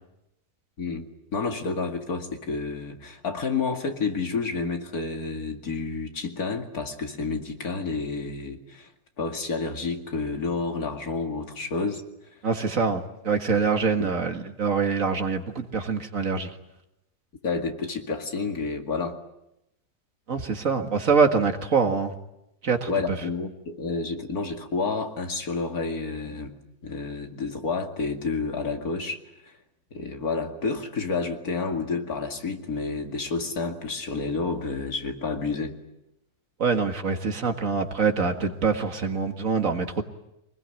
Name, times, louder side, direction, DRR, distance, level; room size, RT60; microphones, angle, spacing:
voice 1, 1.3-8.9 9.2-12.0 14.0-14.1 17.4-19.2 22.9-26.5 26.8-29.2 29.9-35.8, left 4 dB, 70° left, 4 dB, 2.8 m, -30 dB
voice 2, 12.4-16.5 20.3-22.1 22.6-22.9 36.6-40.0, right 5 dB, 60° right, 6 dB, 2.2 m, -24 dB
25.0 x 20.5 x 9.2 m, 0.86 s
omnidirectional pair, 1.6 m